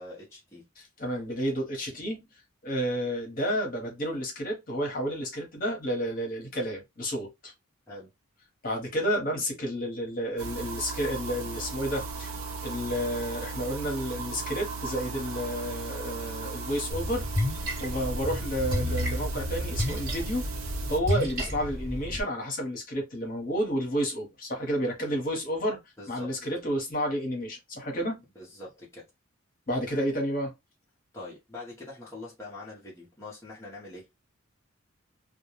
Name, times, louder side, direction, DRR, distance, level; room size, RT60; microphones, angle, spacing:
voice 1, 0.0-0.6 7.9-8.1 26.0-26.3 28.4-29.1 31.1-34.1, left 2 dB, 15° left, 0.7 m, -44 dB
voice 2, 0.8-2.2 2.6-7.5 8.6-12.4 12.6-17.2 17.8-20.5 20.9-25.8 26.1-28.2 29.7-30.5, equal, 40° left, 1.0 m, -31 dB
sound 1, 10.4-21.0, right 4 dB, 80° right, 0.6 m, -37 dB
Splash splatter, 16.9-22.2, left 1 dB, 45° right, 1.1 m, -31 dB
2.3 x 2.2 x 3.0 m
head